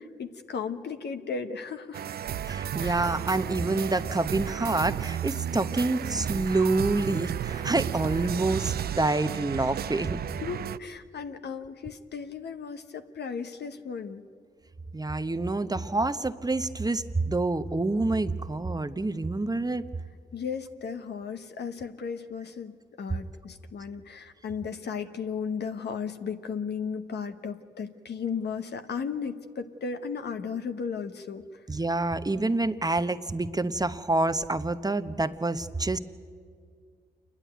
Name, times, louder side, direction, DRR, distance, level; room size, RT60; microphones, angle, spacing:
voice 1, 0.0-2.0 2.8-3.1 10.4-14.2 20.3-31.4, left 6 dB, 65° left, 8 dB, 1.2 m, -35 dB
sound 1, 1.9-10.8, right 10 dB, 60° right, 0.4 m, -33 dB
voice 2, 2.4-10.2 14.9-19.8 31.7-36.0, right 2 dB, 20° right, 11 dB, 0.9 m, -27 dB
28.0 x 11.0 x 9.2 m, 2.1 s
supercardioid pair, 40°, 18 cm